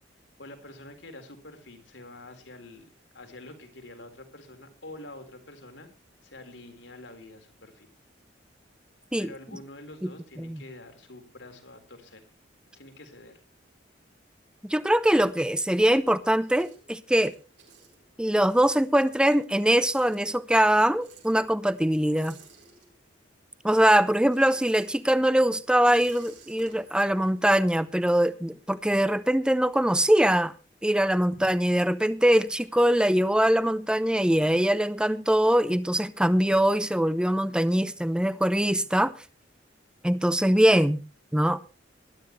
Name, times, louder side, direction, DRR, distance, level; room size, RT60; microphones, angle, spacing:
voice 1, 0.4-5.9 6.2-7.9 9.2-12.2 12.7-13.4 31.4-31.5, left 2 dB, 80° left, 3.9 m, -46 dB
sound 1, 14.4-15.8 16.1-23.3 23.6-28.3, right 5 dB, 70° right, 6.5 m, -56 dB
voice 2, 14.6-17.4 18.2-22.4 23.6-30.5 30.8-39.1 40.0-41.0 41.3-41.6, right 1 dB, 5° right, 0.7 m, -22 dB
20.0 x 12.5 x 3.2 m
head